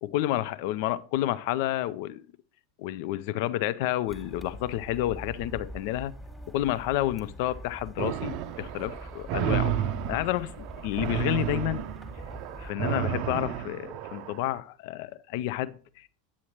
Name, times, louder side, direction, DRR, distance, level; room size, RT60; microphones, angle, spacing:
voice 1, 0.0-2.2 2.8-6.1 6.5-11.8 12.6-16.1, left 14 dB, 50° left, 0.3 m, -30 dB
sound 1, 4.1-12.7, equal, 5° left, 1.3 m, -44 dB
sound 2, 8.0-14.4, right 10 dB, 45° right, 0.5 m, -32 dB
8.6 x 8.3 x 2.9 m
figure-of-eight pair, 85°, 0 cm